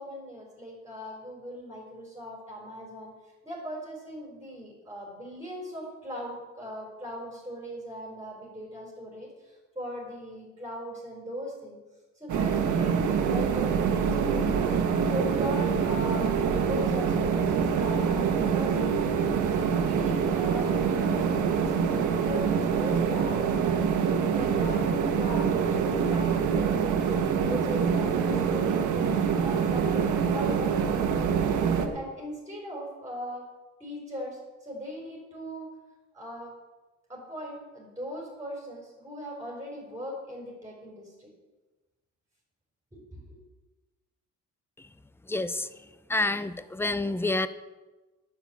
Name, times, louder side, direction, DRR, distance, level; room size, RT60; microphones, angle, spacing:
voice 1, 0.0-11.8 12.1-16.3 16.6-19.0 19.4-24.0 24.3-27.1 27.5-31.5 31.9-33.4 33.8-35.7 36.1-36.5 37.1-41.3 42.9-43.4, equal, 10° right, -3 dB, 4.4 m, -39 dB
sound 1, 12.3-31.9, right 6 dB, 80° right, 1.4 m, -25 dB
voice 2, 45.3-45.7 46.1-47.5, left 2 dB, 10° left, 13 dB, 0.7 m, -28 dB
9.7 x 7.2 x 8.8 m, 1.2 s
cardioid pair, 90°, 30 cm